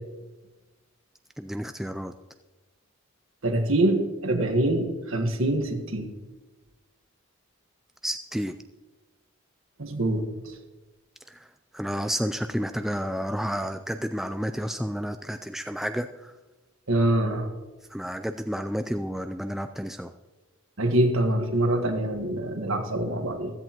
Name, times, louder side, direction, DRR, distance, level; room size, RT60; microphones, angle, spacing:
voice 1, 1.4-2.1 8.0-8.5 11.3-11.4 11.7-16.3 17.9-20.1, equal, ahead, 8 dB, 0.3 m, -31 dB
voice 2, 3.4-6.1 9.8-10.3 16.9-17.5 20.8-23.5, right 1 dB, 70° right, 5 dB, 1.5 m, -24 dB
15.5 x 13.5 x 3.0 m, 1.1 s
head